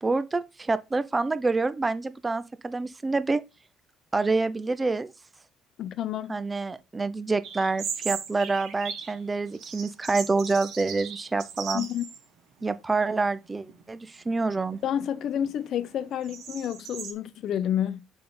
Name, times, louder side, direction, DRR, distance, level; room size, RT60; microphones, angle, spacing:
voice 1, 0.0-3.4 4.1-5.1 6.3-11.9 12.6-14.8, right 3 dB, 20° right, 0.5 m, -27 dB
voice 2, 5.8-6.4 11.7-12.1 14.8-18.0, left 10 dB, 60° left, 0.7 m, -29 dB
sound 1, 7.4-9.2 9.5-12.2 12.6-12.7 13.4-13.8 14.3-17.1, right 7 dB, 75° right, 1.7 m, -38 dB
6.7 x 5.3 x 3.8 m
cardioid pair, 115°, 0 cm